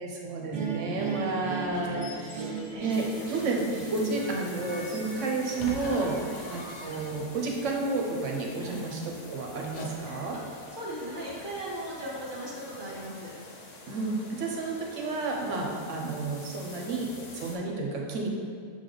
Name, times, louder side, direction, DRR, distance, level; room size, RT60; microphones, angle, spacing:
voice 1, 0.0-6.2 6.5-9.0 9.3-10.4 13.9-18.3, right 3 dB, 60° right, 0 dB, 1.0 m, -31 dB
sound 1, 0.5-7.6, right 5 dB, 90° right, 0.4 m, -38 dB
sound 2, 1.6-3.6 4.6-7.7 9.5-11.5, left 2 dB, 85° left, 1.3 m, -44 dB
sound 3, 2.9-17.6, left 2 dB, 55° left, 0.4 m, -47 dB
voice 2, 10.5-13.3, right 1 dB, 35° right, -5 dB, 1.2 m, -38 dB
7.0 x 3.4 x 3.9 m, 2.1 s
omnidirectional pair, 1.6 m